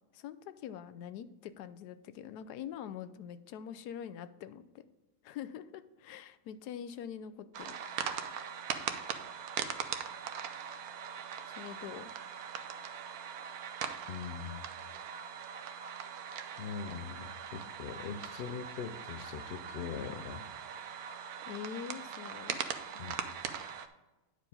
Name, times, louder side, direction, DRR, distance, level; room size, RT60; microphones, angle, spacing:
voice 1, 0.1-4.8 5.2-7.8 11.5-12.1 21.4-22.6, left 9 dB, 90° left, 13 dB, 1.2 m, -44 dB
sound 1, 7.5-23.9, right 7 dB, 70° right, 1.2 m, -41 dB
voice 2, 14.1-14.7 16.6-20.4 22.9-23.2, left 6 dB, 60° left, 11 dB, 0.6 m, -41 dB
10.0 x 4.9 x 5.3 m, 1.1 s
omnidirectional pair, 1.7 m